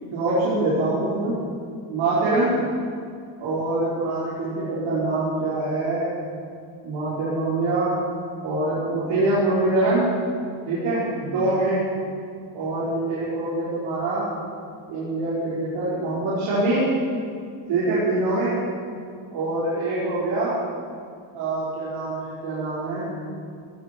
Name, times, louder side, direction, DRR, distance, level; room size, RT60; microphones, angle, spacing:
voice 1, 0.1-1.3 1.9-2.5 3.4-6.1 6.8-7.9 8.4-10.1 10.6-11.8 12.5-14.3 14.9-16.8 17.7-18.5 19.3-20.5 21.3-23.1, right 2 dB, 70° right, -10 dB, 4.7 m, -24 dB
16.5 x 16.0 x 4.5 m, 2.3 s
cardioid pair, 180°, 48 cm